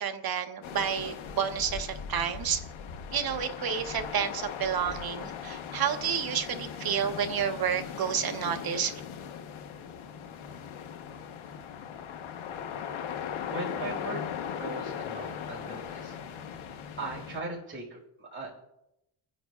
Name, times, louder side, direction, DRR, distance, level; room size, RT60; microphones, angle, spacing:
voice 1, 0.0-2.6 3.1-9.0, right 8 dB, 45° right, 7 dB, 0.9 m, -30 dB
sound 1, 0.6-17.4, left 8 dB, 70° left, 1.1 m, -39 dB
voice 2, 13.2-14.2 14.5-16.1 17.0-18.5, right 2 dB, 25° right, -4 dB, 4.8 m, -39 dB
29.5 x 9.9 x 2.4 m, 0.85 s
cardioid pair, 145°, 50 cm